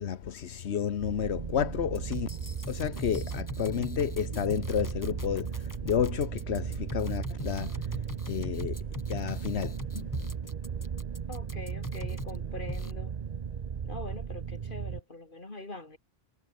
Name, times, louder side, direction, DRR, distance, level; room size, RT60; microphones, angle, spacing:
voice 1, 0.0-10.1, left 8 dB, 85° left, 1.2 m, -31 dB
sound 1, 1.0-15.0, right 7 dB, 45° right, 0.7 m, -36 dB
sound 2, 1.9-12.4 12.7-12.9, left 2 dB, 20° left, 1.7 m, -42 dB
voice 2, 11.3-13.2 13.8-16.0, left 2 dB, 55° left, 3.7 m, -43 dB
omnidirectional pair, 1.1 m